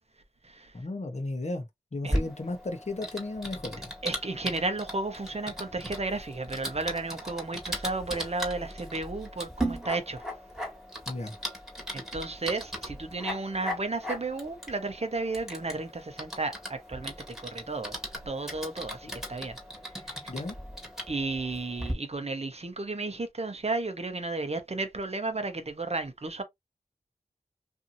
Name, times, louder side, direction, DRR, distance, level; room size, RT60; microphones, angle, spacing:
voice 1, 0.7-1.7 1.9-3.8 11.1-11.3 19.0-19.2 20.3-20.5, left 2 dB, 45° left, 0.8 m, -34 dB
Typing, 2.1-21.9, equal, 5° right, 1.5 m, -38 dB
voice 2, 4.0-10.3 11.9-18.0 18.3-19.6 21.1-26.4, right 3 dB, 45° right, 0.8 m, -33 dB
2.7 x 2.6 x 2.6 m
wide cardioid pair, 45°, 15 cm